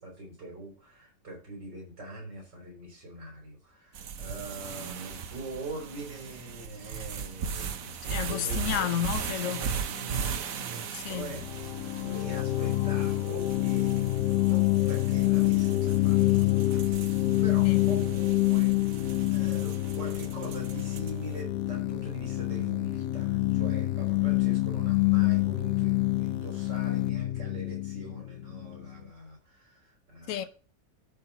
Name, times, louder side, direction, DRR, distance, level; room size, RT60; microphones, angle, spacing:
voice 1, 0.0-8.9 9.4-11.4 12.0-30.5, right 2 dB, 75° right, 5.4 m, -43 dB
sound 1, 4.0-21.3, right 6 dB, 55° right, 1.2 m, -38 dB
voice 2, 8.0-9.7 10.9-11.4 17.6-17.9 30.3-30.4, left 10 dB, 55° left, 1.1 m, -31 dB
sound 2, 11.3-28.9, left 17 dB, 75° left, 1.2 m, -27 dB
13.0 x 4.4 x 5.6 m
omnidirectional pair, 1.9 m